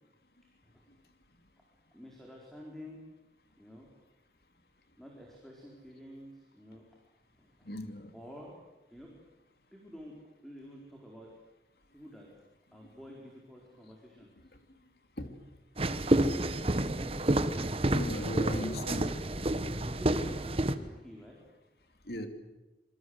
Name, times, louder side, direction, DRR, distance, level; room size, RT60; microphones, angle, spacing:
voice 1, 0.4-0.9 1.9-3.0 3.6-3.9 4.9-6.9 7.4-7.7 8.1-8.5 8.9-9.1 9.7-10.2 10.4-11.3 11.9-12.3 12.7-14.5 18.4-18.8 19.8-21.4, equal, ahead, 4.3 m, -49 dB
voice 2, 7.6-8.1 15.2-15.3 17.9-19.1 22.1-22.3, left 1 dB, 60° left, 2.8 m, -37 dB
sound 1, 15.8-20.7, right 1 dB, 35° right, 1.3 m, -29 dB
27.0 x 24.0 x 8.1 m
head